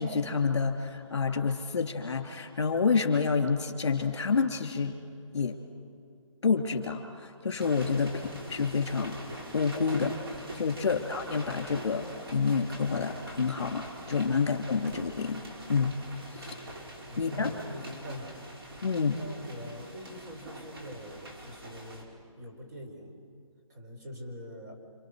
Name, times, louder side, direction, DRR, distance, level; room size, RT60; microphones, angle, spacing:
voice 1, 0.0-5.0 5.3-5.6 6.4-9.2 9.5-15.4 15.7-16.0 16.3-16.5 17.2-17.5 18.8-19.2, left 5 dB, 55° left, 4 dB, 3.1 m, -28 dB
sound 1, 7.6-22.0, right 1 dB, 45° right, 5.3 m, -44 dB
voice 2, 17.1-18.4 19.2-22.1 22.4-23.2 23.7-24.8, equal, 30° right, 0 dB, 4.2 m, -44 dB
29.0 x 27.5 x 6.5 m, 2.5 s
hypercardioid pair, 170°, 17 cm